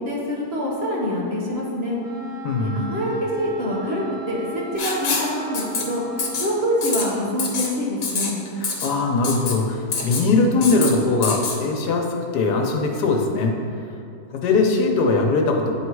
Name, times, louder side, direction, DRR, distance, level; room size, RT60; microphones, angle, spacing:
voice 1, 0.0-2.0 2.6-6.0 6.4-8.3, equal, 45° right, -5 dB, 1.2 m, -25 dB
Wind instrument woodwind instrument, 2.0-6.6, right 1 dB, ahead, 1.2 m, -36 dB
voice 2, 2.4-2.8 8.6-13.6 14.3-15.7, left 3 dB, 90° left, 2 dB, 1.3 m, -21 dB
Writing, 4.8-5.3 5.5-5.8 6.2-6.5 6.8-7.0 7.4-7.7 8.0-8.3 8.6-8.9 9.2-9.5 9.9-10.2 10.6-10.9 11.2-11.6, left 5 dB, 65° left, 1.2 m, -25 dB
9.1 x 3.2 x 4.6 m, 2.6 s
omnidirectional pair, 1.7 m